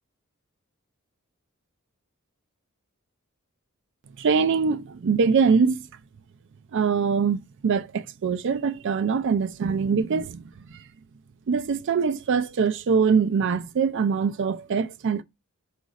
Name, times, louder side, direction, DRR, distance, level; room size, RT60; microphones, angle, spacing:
voice 1, 4.2-5.9 6.7-10.4 10.7-10.8 11.5-15.2, right 5 dB, 55° right, 0.4 m, -23 dB
5.0 x 2.5 x 4.0 m
head